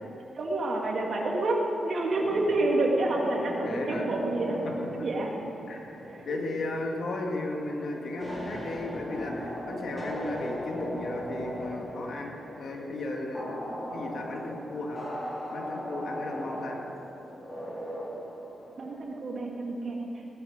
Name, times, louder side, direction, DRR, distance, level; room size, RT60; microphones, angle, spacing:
voice 1, 0.3-1.6 1.8-4.6 4.9-5.3 6.0-6.4 18.8-20.1, right 2 dB, 55° right, -1 dB, 2.7 m, -29 dB
sound 1, 2.1-19.0, equal, 20° left, 4.4 m, -38 dB
voice 2, 3.5-4.1 4.5-4.7 5.7-16.8, left 2 dB, 65° left, 0 dB, 2.3 m, -35 dB
17.5 x 13.0 x 5.3 m, 2.9 s
cardioid pair, 100°, 0 cm